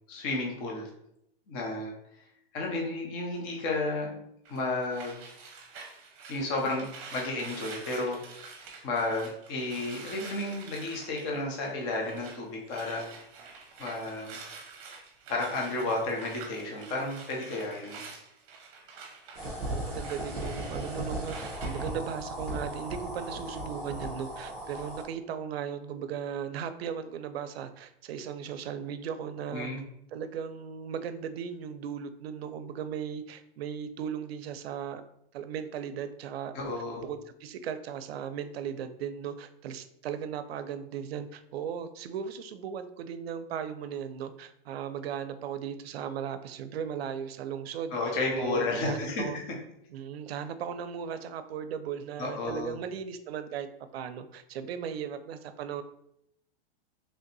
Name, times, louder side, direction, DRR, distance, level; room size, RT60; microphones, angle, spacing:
voice 1, 0.1-0.9 1.5-1.9 2.5-4.2 4.5-5.2 6.3-8.2 8.8-13.0 13.8-14.4 15.3-18.2 29.5-29.8 36.5-37.1 47.9-49.2 52.2-52.8, left 2 dB, 15° left, -1 dB, 0.4 m, -32 dB
sound 1, 4.5-12.4 12.7-21.9, right 4 dB, 35° right, 0.8 m, -47 dB
sound 2, 19.3-25.0, right 1 dB, ahead, 0.9 m, -37 dB
voice 2, 19.6-29.7 30.1-35.0 35.3-36.5 37.0-49.4 49.9-55.8, right 8 dB, 80° right, 10 dB, 0.5 m, -37 dB
3.3 x 2.6 x 3.9 m, 0.76 s
supercardioid pair, 165°, 30 cm